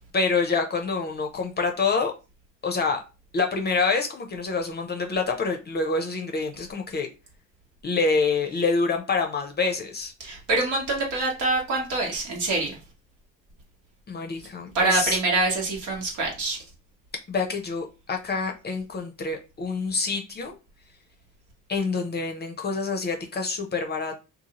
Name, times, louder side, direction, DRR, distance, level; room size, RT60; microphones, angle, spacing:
voice 1, 0.1-2.1 2.6-3.0 3.3-7.1 7.8-10.1 14.1-15.2 17.3-20.5 21.7-24.2, left 4 dB, 35° left, 0.5 m, -26 dB
voice 2, 10.2-12.8 14.7-16.6, right 2 dB, 80° right, 1.2 m, -25 dB
2.7 x 2.4 x 2.8 m
cardioid pair, 90°, 30 cm